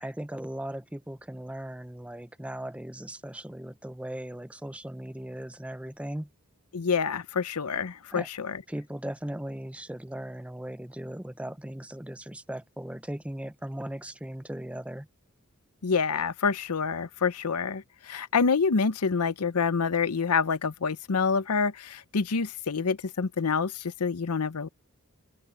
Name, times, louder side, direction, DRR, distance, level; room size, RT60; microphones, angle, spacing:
voice 1, 0.0-6.3 8.1-8.3 8.7-15.1, right 1 dB, 5° right, 0.6 m, -38 dB
voice 2, 6.7-8.6 15.8-24.7, left 5 dB, 85° left, 0.7 m, -27 dB
open air
head